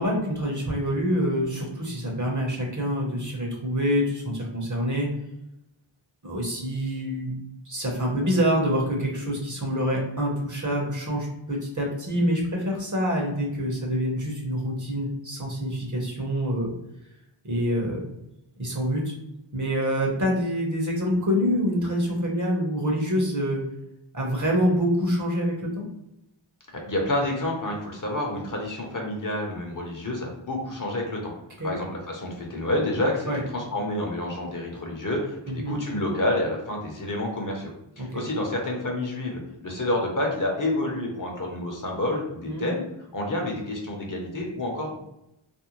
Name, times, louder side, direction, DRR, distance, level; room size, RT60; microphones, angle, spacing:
voice 1, 0.0-5.1 6.2-7.3 7.6-16.7 17.4-18.0 18.6-19.1 19.5-23.6 24.1-25.9 31.6-31.7 33.3-33.4 35.5-35.8 38.0-38.2 42.4-42.7, equal, 35° right, -1 dB, 0.8 m, -26 dB
voice 2, 26.9-31.3 31.6-37.7 38.0-42.8 43.1-44.9, left 1 dB, 40° left, 0 dB, 0.8 m, -29 dB
2.5 x 2.1 x 2.9 m, 0.85 s
wide cardioid pair, 40°, 49 cm